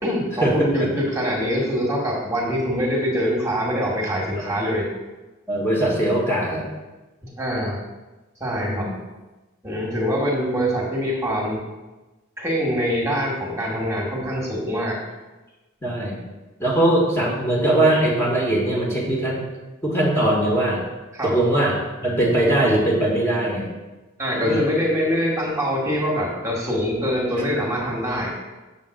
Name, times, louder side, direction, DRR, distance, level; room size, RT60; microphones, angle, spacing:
voice 1, 0.0-4.9 7.2-7.8 8.4-8.9 9.6-11.6 12.4-15.0 21.1-21.3 24.2-28.3, equal, 15° right, -3 dB, 1.4 m, -24 dB
voice 2, 5.5-6.7 8.6-8.9 15.8-16.2 16.6-19.4 19.8-20.9 21.2-23.7 24.4-24.7, right 1 dB, 10° left, -3 dB, 1.3 m, -21 dB
7.1 x 3.6 x 6.3 m, 1.1 s
head